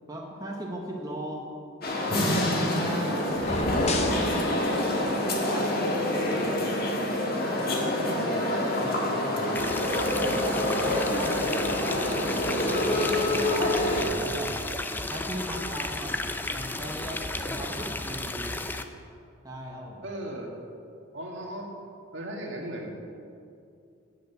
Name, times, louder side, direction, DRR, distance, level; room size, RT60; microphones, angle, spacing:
voice 1, 0.0-1.4 2.1-4.3 5.0-6.7 7.1-8.3 8.7-9.7 10.2-14.6 15.1-18.6 19.4-20.0, equal, 20° right, -2 dB, 1.0 m, -38 dB
sound 1, 1.8-14.0, left 1 dB, 50° left, 1.5 m, -27 dB
sound 2, 3.3-4.3, left 2 dB, 35° left, 0.9 m, -28 dB
voice 2, 8.1-8.7 20.0-20.5 21.1-21.7 22.1-23.2, right 1 dB, 65° right, 0 dB, 1.8 m, -37 dB
sound 3, 9.6-18.8, left 2 dB, 10° left, 0.4 m, -33 dB
8.8 x 8.2 x 6.7 m, 2.5 s
head